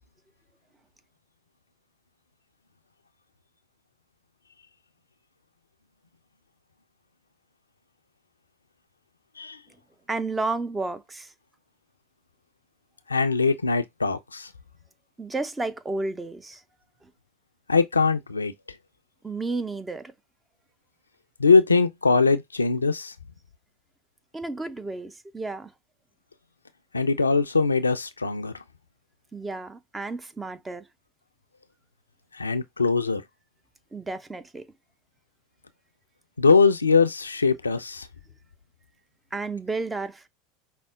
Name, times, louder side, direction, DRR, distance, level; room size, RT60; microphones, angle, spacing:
voice 1, 10.1-11.3 15.2-16.6 17.0-17.1 19.2-20.1 24.3-25.7 29.3-30.9 33.9-34.7 39.3-40.3, right 3 dB, 15° right, 0.6 m, -32 dB
voice 2, 13.1-14.5 17.7-18.5 21.4-23.1 26.9-28.5 32.3-33.2 36.4-38.1, left 4 dB, 85° left, 0.4 m, -21 dB
5.0 x 2.1 x 3.6 m
figure-of-eight pair, 75°, 0 cm